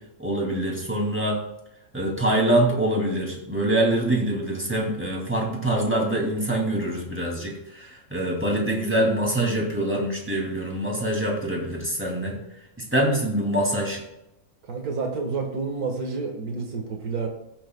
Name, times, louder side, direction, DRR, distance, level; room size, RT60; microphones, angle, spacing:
voice 1, 0.2-1.4 1.9-12.4 12.8-14.0, right 1 dB, 10° right, -2 dB, 2.5 m, -24 dB
voice 2, 14.7-17.3, right 4 dB, 85° right, 2 dB, 1.9 m, -29 dB
15.5 x 7.2 x 2.2 m, 0.88 s
omnidirectional pair, 1.5 m